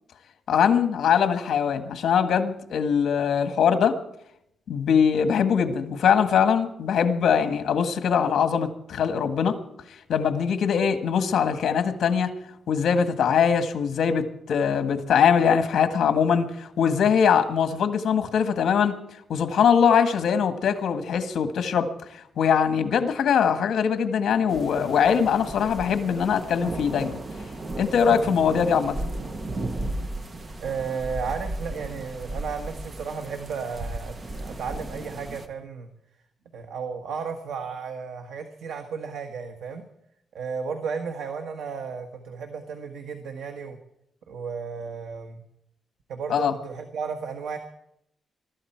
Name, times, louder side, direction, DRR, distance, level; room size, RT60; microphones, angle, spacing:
voice 1, 0.5-4.0 4.7-9.6 10.1-12.3 12.7-19.0 19.3-21.9 22.4-27.2 27.8-29.0 46.3-46.5, left 7 dB, 65° left, 9 dB, 1.6 m, -22 dB
sound 1, 24.5-35.5, right 2 dB, 25° right, 1.1 m, -35 dB
voice 2, 30.6-35.9 36.5-39.8 40.3-43.8 44.3-45.4 46.1-47.6, right 5 dB, 85° right, 5 dB, 1.5 m, -34 dB
22.0 x 13.0 x 4.6 m, 0.77 s
wide cardioid pair, 160°, 0 cm